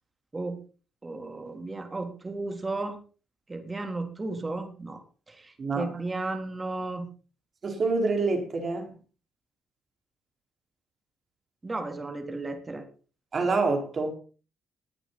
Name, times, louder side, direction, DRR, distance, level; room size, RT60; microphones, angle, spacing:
voice 1, 1.0-3.0 3.5-5.0 5.3-7.1 11.6-12.8, right 2 dB, 25° right, 3.2 m, -34 dB
voice 2, 5.6-5.9 7.6-8.9 13.3-14.1, right 3 dB, 45° right, 4.6 m, -26 dB
20.0 x 8.7 x 4.1 m
cardioid pair, 90°, 0 cm